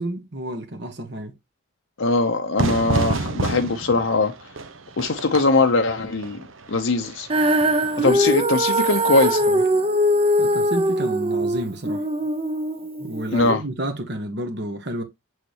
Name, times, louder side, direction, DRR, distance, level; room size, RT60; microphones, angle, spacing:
voice 1, 0.0-1.3 10.4-12.0 13.0-15.0, right 1 dB, 55° right, 1.4 m, -30 dB
voice 2, 2.0-4.3 5.0-6.4 6.7-7.3 8.0-9.6 13.3-13.6, left 3 dB, 70° left, 0.8 m, -21 dB
Fire / Fireworks, 2.6-8.1, right 3 dB, 75° right, 1.1 m, -29 dB
Female singing, 7.3-13.5, equal, 30° right, 0.8 m, -21 dB
6.6 x 6.3 x 3.0 m
head